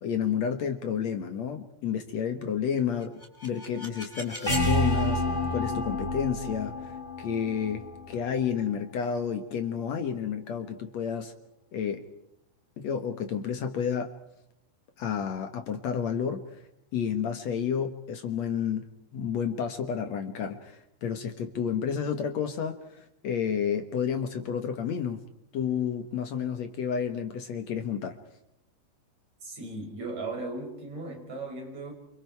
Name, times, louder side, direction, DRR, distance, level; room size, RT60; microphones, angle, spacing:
voice 1, 0.0-5.2 5.5-11.3 11.7-12.1 12.8-14.1 15.0-16.6 16.9-25.2 25.5-28.2, left 7 dB, 65° left, 7 dB, 1.7 m, -31 dB
sound 1, 3.0-8.9, left 1 dB, 10° left, 5.5 m, -30 dB
voice 2, 29.4-31.9, right 2 dB, 40° right, 1 dB, 7.4 m, -37 dB
29.0 x 28.0 x 4.7 m, 0.81 s
omnidirectional pair, 5.0 m